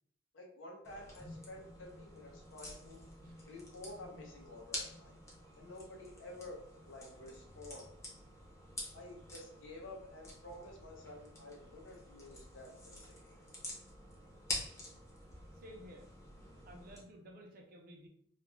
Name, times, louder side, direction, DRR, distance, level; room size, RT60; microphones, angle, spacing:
voice 1, 0.3-3.0 3.5-5.1 5.6-6.6 6.9-7.9 8.9-13.4, left 2 dB, 90° left, 0 dB, 0.6 m, -51 dB
sound 1, 0.8-17.0, left 1 dB, 15° left, 0.6 m, -48 dB
voice 2, 15.5-16.1 16.7-18.1, equal, 50° right, 2 dB, 0.4 m, -54 dB
2.3 x 2.1 x 3.0 m, 0.65 s
head